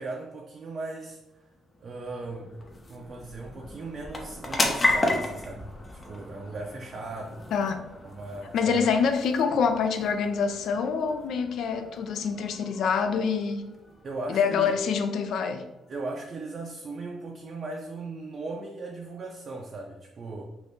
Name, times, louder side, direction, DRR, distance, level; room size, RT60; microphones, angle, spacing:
voice 1, 0.0-1.5 1.8-2.5 2.9-7.5 8.0-9.0 14.0-14.7 15.9-20.4, right 3 dB, 50° right, -1 dB, 0.4 m, -38 dB
sound 1, 1.1-16.0, left 2 dB, 30° left, 0.6 m, -35 dB
voice 2, 7.5-7.8 8.5-13.7 14.3-15.7, left 6 dB, 75° left, 8 dB, 0.3 m, -26 dB
2.6 x 2.5 x 3.4 m, 0.96 s
cardioid pair, 90°, 0 cm